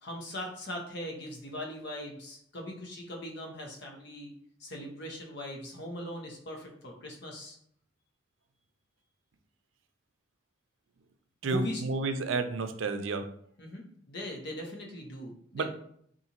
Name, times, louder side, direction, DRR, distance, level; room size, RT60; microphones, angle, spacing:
voice 1, 0.0-4.3 4.6-7.6 11.4-11.8 13.6-15.7, left 1 dB, 60° left, 1 dB, 0.8 m, -40 dB
voice 2, 11.4-13.2 15.5-15.7, right 3 dB, 85° right, 7 dB, 0.4 m, -31 dB
3.8 x 2.5 x 2.9 m, 0.65 s
head